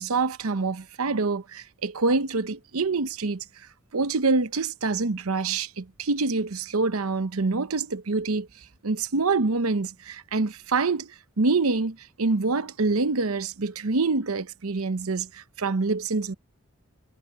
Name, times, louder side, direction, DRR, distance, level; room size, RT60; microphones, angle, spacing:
voice 1, 0.0-3.4 3.9-8.5 8.8-11.1 11.4-16.3, right 3 dB, 85° right, 0.8 m, -26 dB
head